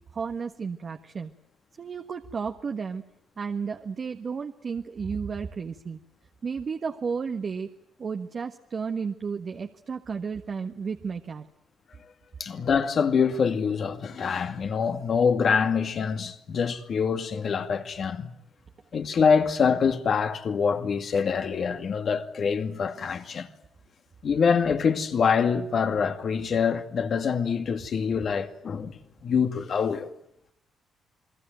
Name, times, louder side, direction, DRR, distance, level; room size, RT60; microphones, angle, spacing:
voice 1, 0.1-1.3 1.8-3.0 3.4-6.0 6.4-7.7 8.0-11.4, right 5 dB, 45° right, 1.5 m, -33 dB
voice 2, 12.4-18.3 18.9-23.5 24.2-30.1, left 6 dB, 55° left, 2.4 m, -25 dB
29.0 x 21.0 x 9.1 m
cardioid pair, 90°, 0 cm